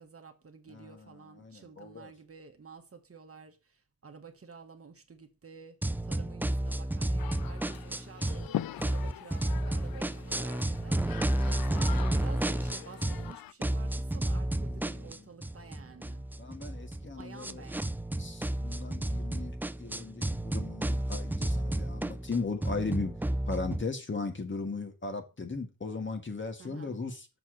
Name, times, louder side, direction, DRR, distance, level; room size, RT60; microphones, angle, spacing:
voice 1, 0.0-16.4 16.7-17.9 26.6-26.9, right 5 dB, 40° right, 1.2 m, -51 dB
voice 2, 0.7-2.1 14.5-15.2 16.4-17.6 18.2-23.1 23.5-27.3, left 4 dB, 35° left, 1.7 m, -37 dB
sound 1, 5.8-8.5 8.8-13.3 13.6-23.8, right 1 dB, 5° right, 0.3 m, -32 dB
sound 2, 7.2-13.5, left 12 dB, 85° left, 0.5 m, -42 dB
6.9 x 4.4 x 6.4 m
wide cardioid pair, 100°, 34 cm